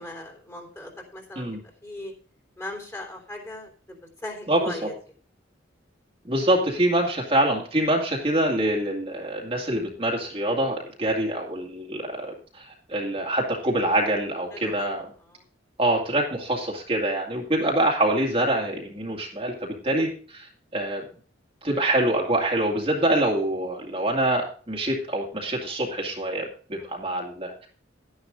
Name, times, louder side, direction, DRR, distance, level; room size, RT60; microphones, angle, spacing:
voice 1, 0.0-2.1 2.6-4.9 14.5-14.9 15.3-15.4 26.8-26.9, left 1 dB, 15° left, 2 dB, 3.4 m, -39 dB
voice 2, 4.5-4.9 6.3-15.1 15.8-21.0 21.6-27.7, right 1 dB, 30° right, -1 dB, 2.2 m, -25 dB
12.0 x 10.5 x 3.7 m, 0.41 s
head